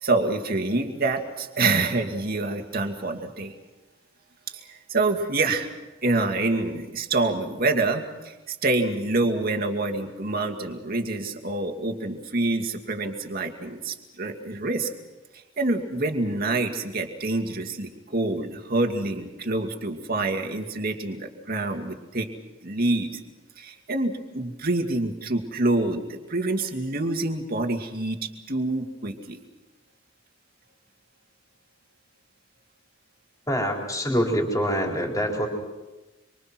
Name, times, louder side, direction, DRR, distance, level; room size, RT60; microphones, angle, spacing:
voice 1, 0.0-3.5 4.5-5.7 6.0-14.9 15.3-22.3 22.6-23.2 23.6-29.4, right 2 dB, 45° right, 4 dB, 2.3 m, -27 dB
voice 2, 33.5-35.5, equal, 15° left, 0 dB, 4.4 m, -25 dB
26.0 x 25.0 x 6.1 m, 1.1 s
head